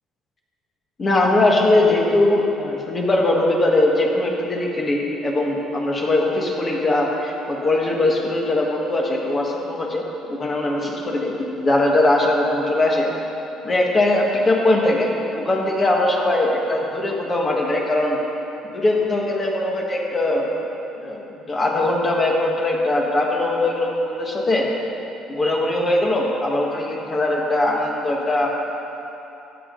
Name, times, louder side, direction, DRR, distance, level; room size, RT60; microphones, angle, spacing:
voice 1, 1.0-13.1 13.6-18.2 18.7-20.5 21.0-24.6 25.3-28.5, left 2 dB, 30° left, -1 dB, 1.6 m, -20 dB
13.0 x 8.4 x 3.9 m, 3.0 s
cardioid pair, 100°, 0 cm